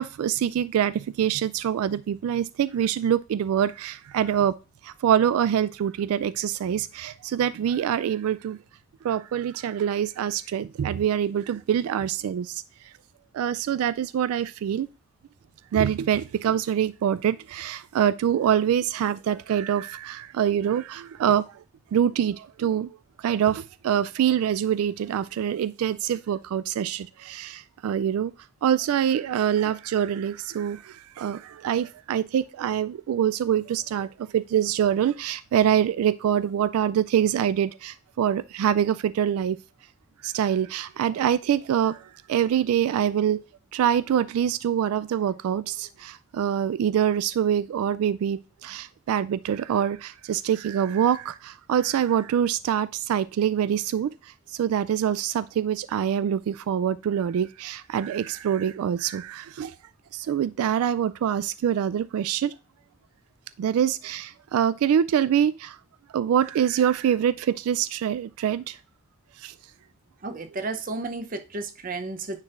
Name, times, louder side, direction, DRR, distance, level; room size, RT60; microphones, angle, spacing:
voice 1, 0.0-4.5 4.8-8.6 9.0-12.6 13.3-14.9 15.7-21.6 21.9-28.3 28.6-39.6 40.2-43.4 43.7-59.7 60.1-62.5 63.6-65.8 66.1-68.8 69.4-69.5, right 9 dB, 90° right, 0.3 m, -25 dB
voice 2, 70.2-72.4, right 3 dB, 40° right, 0.7 m, -33 dB
9.6 x 4.5 x 2.4 m
head